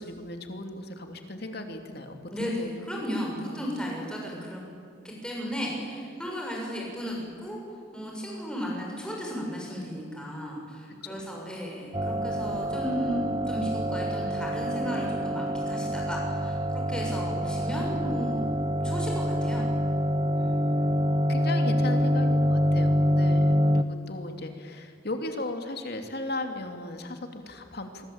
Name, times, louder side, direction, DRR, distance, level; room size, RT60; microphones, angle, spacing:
voice 1, 0.0-2.6 3.3-3.6 11.0-11.5 20.4-28.0, left 2 dB, 55° left, 5 dB, 2.6 m, -37 dB
voice 2, 2.3-4.6 5.0-7.6 7.9-18.4 18.8-19.7, equal, 5° left, -2 dB, 7.1 m, -34 dB
sound 1, 11.9-23.8, equal, 20° right, 0.6 m, -26 dB
27.5 x 24.0 x 8.8 m, 2.3 s
head